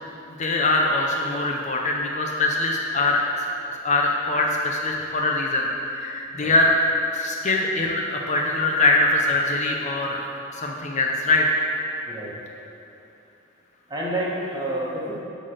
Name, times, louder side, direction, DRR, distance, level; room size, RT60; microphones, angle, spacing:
voice 1, 0.4-3.3 3.6-6.8 7.1-10.2 10.5-11.6, left 2 dB, 40° left, 0 dB, 0.7 m, -23 dB
voice 2, 12.1-12.6 13.9-15.2, right 1 dB, 20° right, -5 dB, 1.5 m, -29 dB
10.5 x 4.1 x 6.4 m, 2.8 s
head